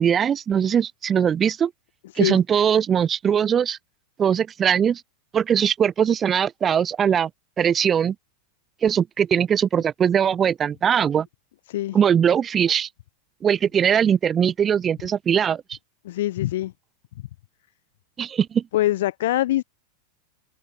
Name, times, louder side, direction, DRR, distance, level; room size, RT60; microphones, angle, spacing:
voice 1, 0.0-1.7 2.2-3.8 4.2-5.0 5.3-7.3 7.6-8.1 8.8-11.3 11.9-12.9 13.4-15.6 18.2-18.6, right 8 dB, 25° right, 6.1 m, -20 dB
voice 2, 16.0-16.7 18.7-19.6, left 15 dB, 55° left, 2.8 m, -23 dB
figure-of-eight pair, 90°, 0 cm